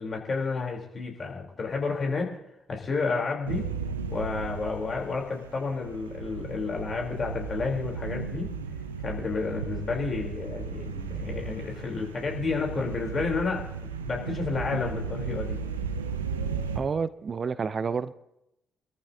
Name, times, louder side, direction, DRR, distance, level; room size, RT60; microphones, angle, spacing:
voice 1, 0.0-2.4 2.7-3.7 4.1-8.5 9.0-13.7 14.1-15.6, left 4 dB, 45° left, 0 dB, 3.7 m, -31 dB
sound 1, 3.5-16.8, right 5 dB, 90° right, 0.7 m, -35 dB
voice 2, 16.7-18.1, right 5 dB, 45° right, 15 dB, 0.6 m, -29 dB
26.0 x 13.5 x 2.8 m, 0.84 s
hypercardioid pair, 45°, 0 cm